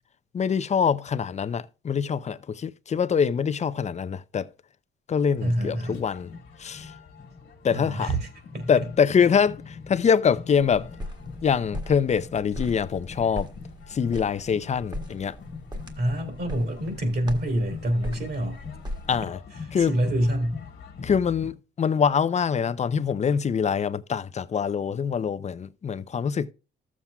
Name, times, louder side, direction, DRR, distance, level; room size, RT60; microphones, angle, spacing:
voice 1, 0.3-4.5 5.1-6.3 6.6-6.9 7.6-8.1 8.7-10.9 11.4-13.5 13.9-15.4 19.1-19.4 19.7-20.0 21.0-26.5, left 7 dB, 35° left, 0.5 m, -24 dB
sound 1, 5.4-21.5, left 5 dB, 65° left, 1.6 m, -43 dB
voice 2, 5.4-6.0 7.7-8.3 8.5-8.7 16.0-18.6 19.6-20.6, right 1 dB, 55° right, 3.1 m, -26 dB
sound 2, 10.6-19.2, left 1 dB, 20° right, 1.5 m, -39 dB
14.0 x 7.3 x 2.3 m
cardioid pair, 90°, 20 cm